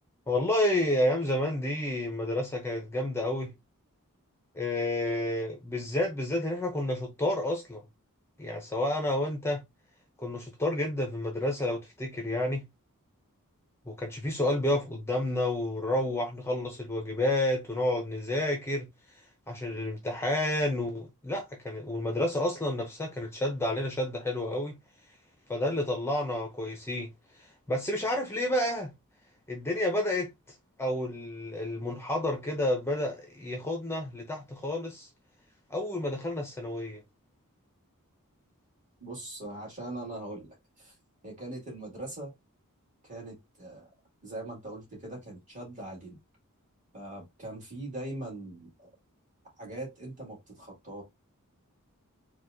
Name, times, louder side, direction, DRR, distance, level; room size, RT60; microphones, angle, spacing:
voice 1, 0.3-3.5 4.5-7.8 8.4-9.6 10.2-12.7 13.9-18.9 19.5-24.7 25.5-27.1 27.4-28.9 29.5-30.3 30.8-35.1 35.7-37.0, left 1 dB, 10° left, 0.6 m, -30 dB
voice 2, 39.0-40.9 41.2-42.3 43.0-43.9 44.2-46.2 46.9-48.9 49.6-51.0, right 1 dB, 35° right, 2.0 m, -41 dB
4.5 x 2.2 x 2.6 m
head